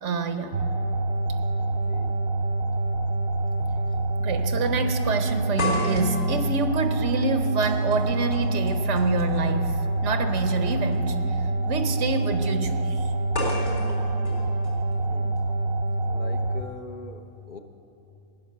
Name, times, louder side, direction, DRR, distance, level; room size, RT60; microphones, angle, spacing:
voice 1, 0.0-0.6 4.2-11.2 11.7-13.1, right 4 dB, 85° right, 8 dB, 1.2 m, -27 dB
sound 1, 0.5-16.6, right 2 dB, 65° right, 0.9 m, -26 dB
sound 2, 2.4-2.5 3.6-3.8 4.1-4.2 5.6-9.6 10.8-11.0 13.3-15.4, left 2 dB, 70° left, 4.0 m, -34 dB
voice 2, 15.0-15.4 16.0-17.2 17.5-17.6, left 3 dB, 50° left, 5 dB, 0.9 m, -41 dB
16.0 x 9.7 x 6.7 m, 2.9 s
omnidirectional pair, 1.2 m